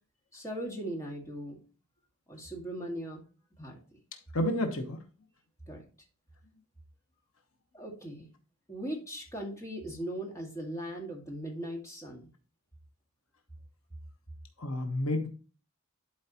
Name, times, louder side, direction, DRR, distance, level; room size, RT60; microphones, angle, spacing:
voice 1, 0.3-1.6 2.3-3.2 3.6-4.0 5.7-5.8 7.7-8.3 8.7-12.3, right 1 dB, 15° left, 2.1 m, -39 dB
voice 2, 4.3-5.0 14.6-15.3, left 1 dB, 70° left, 1.2 m, -30 dB
11.5 x 4.7 x 3.0 m
head